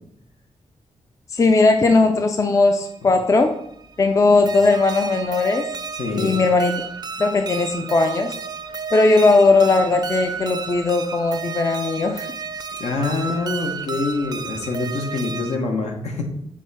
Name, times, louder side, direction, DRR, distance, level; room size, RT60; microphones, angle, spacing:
voice 1, 1.3-3.5 4.0-5.7 6.2-6.7 7.2-8.3 8.9-12.3, left 3 dB, 30° left, 5 dB, 0.5 m, -18 dB
sound 1, 2.9-15.6, right 5 dB, 35° right, 0.5 m, -32 dB
voice 2, 5.9-6.3 12.8-16.2, left 3 dB, 75° left, 2 dB, 1.3 m, -25 dB
7.3 x 3.6 x 4.2 m, 0.74 s
wide cardioid pair, 130°, 12 cm